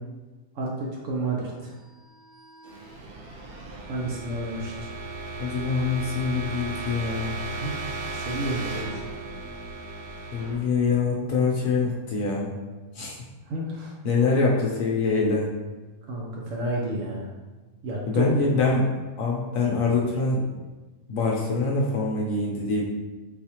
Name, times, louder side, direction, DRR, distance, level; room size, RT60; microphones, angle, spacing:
voice 1, 0.6-1.7 3.9-4.9 7.6-9.1 13.5-13.9 16.1-17.3 17.8-18.5, right 2 dB, 65° right, -3 dB, 0.9 m, -31 dB
sound 1, 1.9-11.7, right 3 dB, 90° right, 0.5 m, -36 dB
voice 2, 5.4-7.4 10.3-12.5 12.9-13.2 14.0-15.5 18.1-18.8 19.2-20.5 21.1-22.8, left 4 dB, 70° left, -2 dB, 0.9 m, -24 dB
4.1 x 2.4 x 2.8 m, 1.2 s
omnidirectional pair, 1.6 m